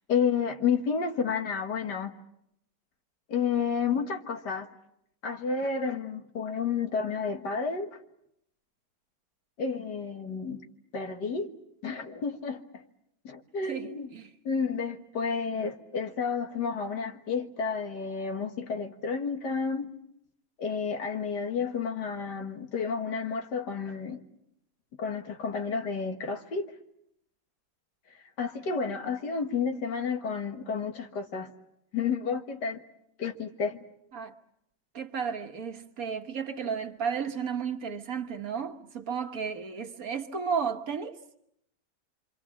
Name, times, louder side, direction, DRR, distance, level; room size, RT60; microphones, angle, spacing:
voice 1, 0.1-2.1 3.3-4.7 5.2-8.0 9.6-10.6 10.9-11.5 11.8-12.8 13.2-14.1 14.5-19.9 20.6-24.2 25.0-26.7 28.4-31.5 31.9-32.8 33.2-33.8, left 5 dB, 75° left, 2.1 m, -31 dB
voice 2, 13.7-14.3 34.1-34.3 34.9-41.2, right 6 dB, 55° right, 1.6 m, -33 dB
26.5 x 26.0 x 7.3 m
omnidirectional pair, 1.9 m